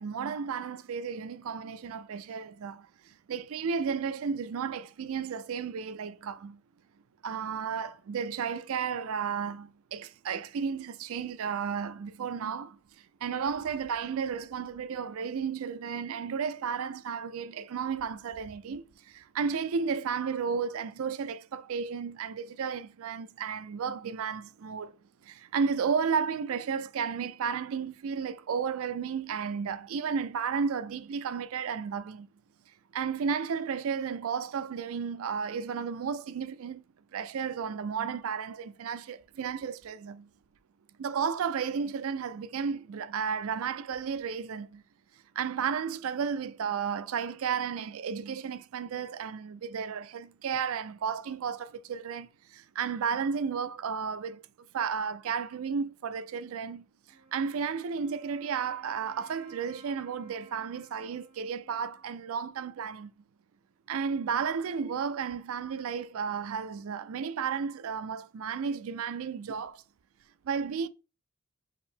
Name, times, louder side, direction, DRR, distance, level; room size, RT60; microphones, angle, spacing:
voice 1, 0.0-2.9 3.3-6.6 7.2-12.8 13.2-24.9 25.3-32.3 32.9-36.8 37.1-40.3 41.0-44.8 45.4-54.4 54.7-56.8 57.3-63.1 63.9-69.8 70.5-70.9, right 6 dB, 70° right, 0.4 m, -33 dB
Wind instrument woodwind instrument, 57.1-62.8, right 3 dB, 30° right, 2.0 m, -58 dB
4.8 x 2.6 x 3.5 m
head